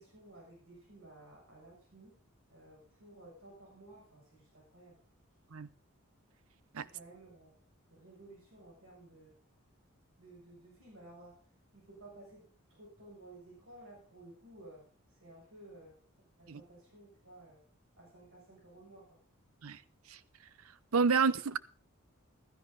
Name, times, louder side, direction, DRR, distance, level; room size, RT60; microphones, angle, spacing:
voice 1, 0.0-2.1 2.5-5.0 6.9-7.6 7.9-9.4 10.2-11.4 11.7-12.4 12.7-14.8 15.2-16.0 16.4-17.6 18.0-19.2, right 2 dB, 70° right, 7.0 m, -55 dB
voice 2, 20.9-21.6, right 5 dB, 90° right, 0.7 m, -29 dB
15.5 x 13.0 x 3.9 m
head